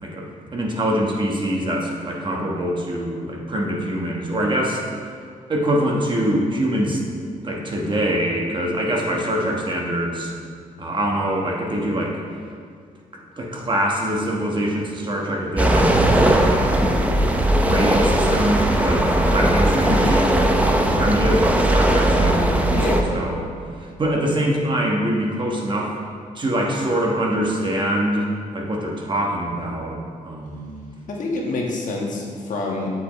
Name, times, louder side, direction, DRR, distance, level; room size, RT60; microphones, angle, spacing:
voice 1, 0.0-4.8 5.5-7.0 7.4-10.3 10.8-12.2 13.1-16.6 17.5-20.3 20.9-22.9 23.1-23.5 23.8-25.9 26.3-30.7, right 1 dB, 35° right, -1 dB, 1.2 m, -24 dB
sound 1, 15.6-23.0, right 1 dB, 10° right, 0.6 m, -18 dB
voice 2, 22.7-23.2 31.1-33.0, left 2 dB, 60° left, -2 dB, 1.4 m, -27 dB
8.1 x 7.4 x 3.1 m, 2.1 s
cardioid pair, 115°, 15 cm